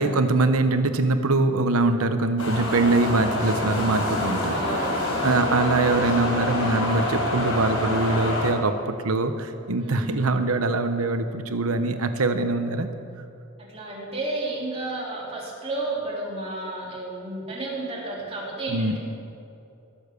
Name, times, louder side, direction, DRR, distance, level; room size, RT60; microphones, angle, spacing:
voice 1, 0.0-4.6 5.2-12.9 18.7-19.0, right 2 dB, 80° right, 9 dB, 1.0 m, -23 dB
sound 1, 2.4-8.5, left 1 dB, 85° left, 4.1 m, -26 dB
voice 2, 4.2-5.1 9.8-10.3 13.7-19.0, right 2 dB, 25° right, -5 dB, 3.4 m, -32 dB
20.5 x 7.3 x 6.7 m, 2.7 s
head